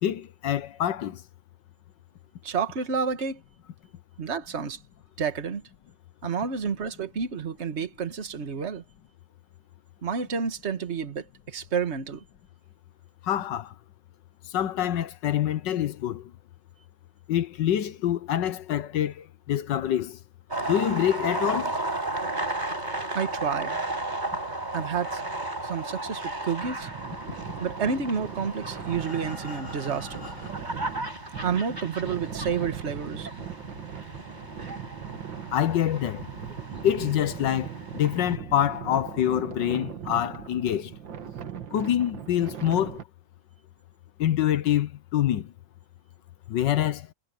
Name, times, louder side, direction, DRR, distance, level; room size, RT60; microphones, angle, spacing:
voice 1, 0.0-1.2 13.2-13.7 14.5-16.3 17.3-20.2 20.6-21.8 35.5-36.3 36.8-40.9 41.7-43.0 44.2-45.5 46.5-47.1, left 11 dB, 75° left, 1.5 m, -26 dB
voice 2, 2.4-3.4 4.2-4.8 5.2-5.6 6.2-8.8 10.0-12.2 23.1-23.8 24.7-25.2 25.6-26.9 27.6-30.2 31.4-33.3, right 6 dB, 40° right, 1.7 m, -30 dB
sound 1, 20.5-38.4, right 2 dB, 25° right, 5.5 m, -35 dB
sound 2, 26.6-43.0, right 8 dB, 80° right, 2.2 m, -39 dB
Breathing, 27.9-30.9 31.6-31.7 32.1-32.2 32.6-32.7, left 4 dB, 40° left, 2.5 m, -44 dB
omnidirectional pair, 2.0 m